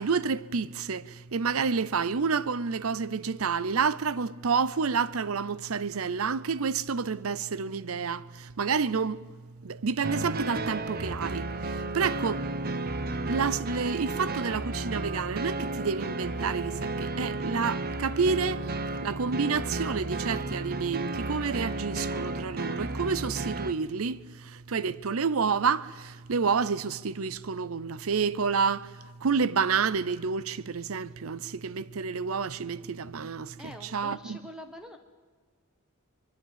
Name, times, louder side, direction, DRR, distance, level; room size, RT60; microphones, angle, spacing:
voice 1, 0.0-9.3 9.6-12.5 13.3-34.4, right 5 dB, 85° right, 0.7 m, -29 dB
sound 1, 10.0-23.7, right 2 dB, 45° right, 1.0 m, -33 dB
voice 2, 33.6-35.0, equal, 5° right, 1.4 m, -45 dB
24.5 x 23.0 x 7.5 m
head